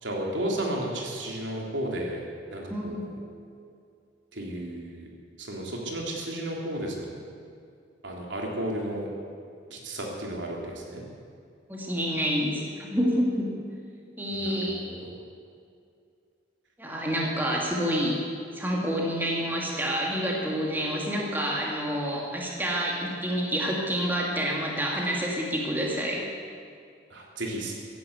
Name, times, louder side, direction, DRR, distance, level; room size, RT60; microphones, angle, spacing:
voice 1, 0.0-3.2 4.3-5.1 5.4-7.1 8.0-9.1 9.7-11.0 14.3-15.1 27.1-27.7, right 1 dB, 80° right, -1 dB, 3.2 m, -33 dB
voice 2, 2.6-3.0 11.7-13.5 14.2-14.9 16.8-18.2 18.5-26.3, equal, 10° right, -2 dB, 2.3 m, -28 dB
15.5 x 11.5 x 8.1 m, 2.4 s
head